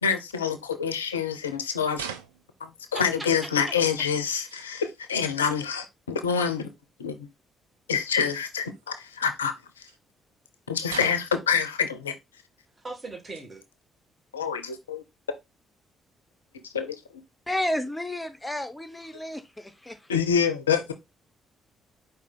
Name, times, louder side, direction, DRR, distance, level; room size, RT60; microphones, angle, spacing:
voice 1, 0.0-2.0 2.6-6.7 7.0-7.3 7.9-9.5 10.7-12.1 14.3-15.0 16.7-17.0 20.1-20.9, left 7 dB, 80° left, 0.4 m, -26 dB
sound 1, 1.9-2.7 3.9-4.0 4.3-4.8 6.4-6.6 8.6-9.3 9.9-10.0 10.9-11.5 12.5-12.6 13.0-13.6 14.1-14.2 15.3-15.4 16.5-16.6 18.0-18.3, right 7 dB, 80° right, 0.3 m, -41 dB
voice 2, 2.9-4.1 12.8-13.6, right 2 dB, 30° right, 1.4 m, -40 dB
voice 3, 17.5-20.0, left 1 dB, 10° left, 0.6 m, -31 dB
4.8 x 2.6 x 3.7 m
figure-of-eight pair, 45°, 0 cm